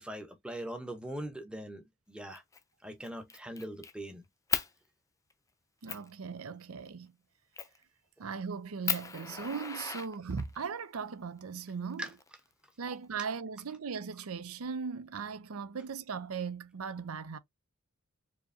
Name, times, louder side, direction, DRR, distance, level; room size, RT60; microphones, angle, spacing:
voice 1, 0.0-2.4 2.8-4.2 12.0-12.1, right 1 dB, 5° right, 0.9 m, -41 dB
Fire, 2.3-2.6 3.0-3.9 4.5-4.7 5.3-5.4 5.9-6.1 7.6-7.8 8.3-8.4 8.8-10.6 11.7-12.6, left 6 dB, 15° left, 0.5 m, -36 dB
voice 2, 5.8-7.1 8.2-12.1 12.8-17.4, right 5 dB, 80° right, 0.6 m, -38 dB
4.6 x 3.0 x 2.7 m
head